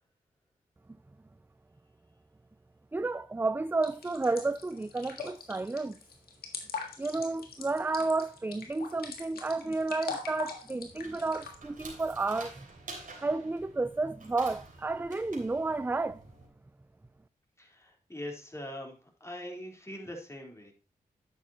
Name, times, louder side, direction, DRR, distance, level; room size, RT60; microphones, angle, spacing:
voice 1, 2.9-6.0 7.0-12.7 13.2-16.2, right 3 dB, 15° right, 0.4 m, -31 dB
sound 1, 3.8-11.6, left 5 dB, 85° left, 1.7 m, -42 dB
sound 2, 10.8-16.5, right 3 dB, 60° right, 3.3 m, -49 dB
voice 2, 17.6-20.7, left 1 dB, 20° left, 3.9 m, -42 dB
10.5 x 8.4 x 2.9 m
supercardioid pair, 45°, 16 cm